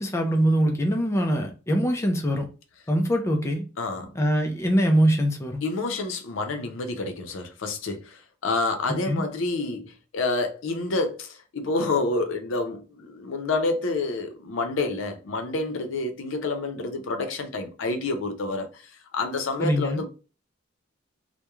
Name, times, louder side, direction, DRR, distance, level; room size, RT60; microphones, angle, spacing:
voice 1, 0.0-2.5 2.9-3.6 4.2-5.6 8.9-9.2 19.6-20.0, equal, 15° left, 0.4 m, -23 dB
voice 2, 3.8-4.2 5.6-20.1, left 3 dB, 80° left, 0.5 m, -28 dB
2.3 x 2.1 x 2.9 m
head